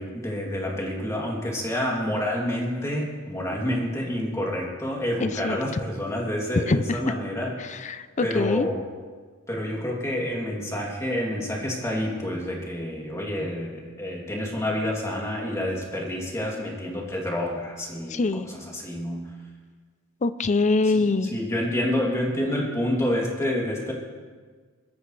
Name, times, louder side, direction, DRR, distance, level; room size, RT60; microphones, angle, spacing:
voice 1, 0.0-7.8 8.2-8.8 9.5-19.2 21.3-23.9, left 1 dB, 15° left, -2 dB, 2.8 m, -28 dB
voice 2, 5.2-5.6 6.7-7.1 7.6-8.7 18.1-18.5 20.2-21.3, left 3 dB, 35° left, 14 dB, 0.5 m, -24 dB
22.0 x 13.5 x 3.3 m, 1.5 s
head